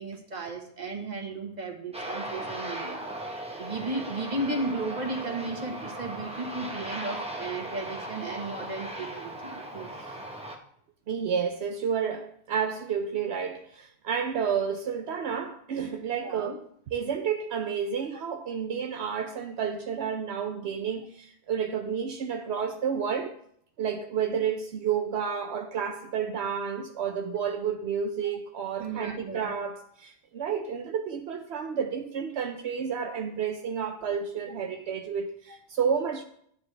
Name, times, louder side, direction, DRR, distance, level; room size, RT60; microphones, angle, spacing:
voice 1, 0.0-3.1 3.6-10.0 16.2-16.6 28.8-29.5, right 2 dB, 40° right, 1.6 m, -34 dB
Aircraft, 1.9-10.6, right 1 dB, 5° right, 1.1 m, -37 dB
voice 2, 11.1-23.4 23.8-36.2, right 7 dB, 80° right, 1.0 m, -31 dB
11.5 x 9.3 x 3.4 m
omnidirectional pair, 1.1 m